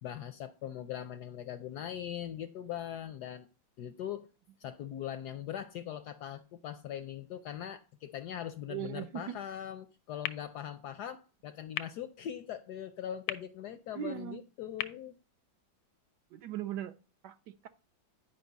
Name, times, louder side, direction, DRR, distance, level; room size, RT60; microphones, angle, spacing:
voice 1, 0.0-3.5 3.8-4.3 4.6-15.2, left 10 dB, 75° left, 11 dB, 0.9 m, -41 dB
voice 2, 8.7-9.4 13.9-14.4 16.3-16.9 17.2-17.7, right 11 dB, 70° right, 11 dB, 1.1 m, -39 dB
sound 1, 10.2-16.2, left 12 dB, 90° left, 1.5 m, -44 dB
10.5 x 5.3 x 4.0 m, 0.34 s
omnidirectional pair, 2.2 m